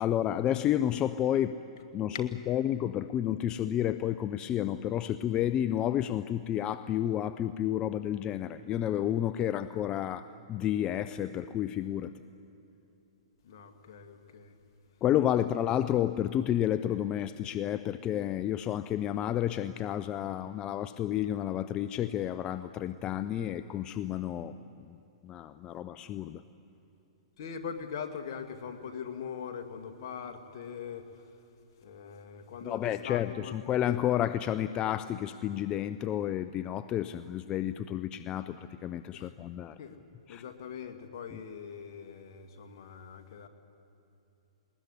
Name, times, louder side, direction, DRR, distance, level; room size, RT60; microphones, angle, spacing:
voice 1, 0.0-1.6 1.9-12.1 15.0-24.6 24.9-25.0 25.2-26.4 32.6-39.8 40.3-40.4, left 11 dB, 25° left, 13 dB, 0.5 m, -31 dB
voice 2, 13.4-14.6 15.3-15.4 27.4-31.2 31.8-33.6 39.1-39.3 39.8-40.0 40.3-43.5, left 7 dB, 55° left, 5 dB, 2.2 m, -42 dB
21.0 x 20.0 x 9.9 m, 2.8 s
hypercardioid pair, 125°, 3 cm